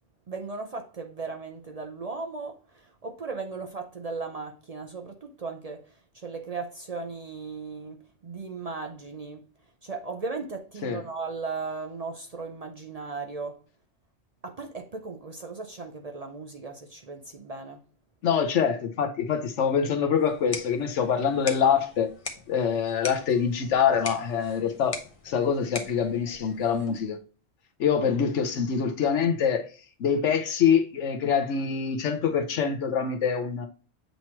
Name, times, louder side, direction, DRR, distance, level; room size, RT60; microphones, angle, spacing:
voice 1, 0.3-5.8 6.1-9.4 9.8-13.6 14.4-17.8, right 4 dB, 45° right, 0.5 m, -37 dB
voice 2, 18.2-22.1 22.5-25.0 25.2-27.2 27.8-29.7 30.0-33.7, left 7 dB, 80° left, 1.2 m, -25 dB
sound 1, 20.2-27.2, left 3 dB, 30° left, 0.9 m, -41 dB
7.9 x 3.0 x 4.4 m
omnidirectional pair, 1.2 m